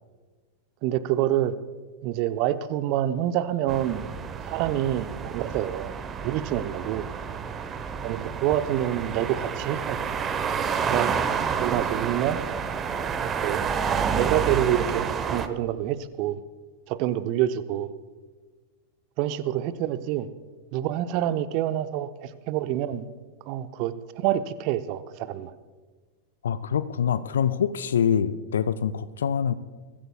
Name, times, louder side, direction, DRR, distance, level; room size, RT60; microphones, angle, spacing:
voice 1, 0.8-1.5 2.0-4.1 4.5-5.9 6.2-7.0 8.0-10.0 10.8-11.1 11.5-12.4 13.2-13.6 14.2-16.4 16.9-17.9 19.2-20.3 20.7-23.1 23.5-25.5, right 12 dB, 45° right, 13 dB, 0.6 m, -27 dB
sound 1, 3.7-15.5, right 6 dB, 25° right, 0.9 m, -29 dB
voice 2, 26.4-29.5, left 8 dB, 65° left, 14 dB, 0.5 m, -25 dB
22.5 x 15.0 x 2.3 m, 1.4 s
figure-of-eight pair, 90°, 0 cm